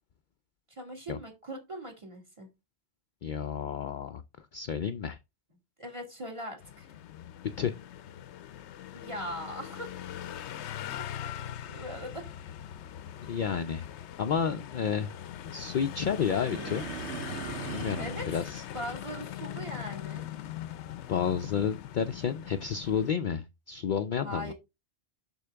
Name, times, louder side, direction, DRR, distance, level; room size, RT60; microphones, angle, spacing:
voice 1, 0.7-2.5 5.8-6.9 8.9-10.0 11.2-11.4 11.7-12.2 16.2-16.8 18.0-20.3 24.2-24.5, equal, 25° right, 2.3 m, -40 dB
voice 2, 3.2-4.2 4.5-5.2 7.6-7.7 13.2-13.9 14.2-15.1 15.4-16.8 17.7-18.6 21.1-24.5, left 7 dB, 55° left, 0.6 m, -31 dB
sound 1, 6.6-23.1, left 11 dB, 80° left, 0.9 m, -41 dB
sound 2, 16.2-18.3, right 10 dB, 80° right, 0.9 m, -40 dB
6.6 x 6.3 x 3.4 m
omnidirectional pair, 1.2 m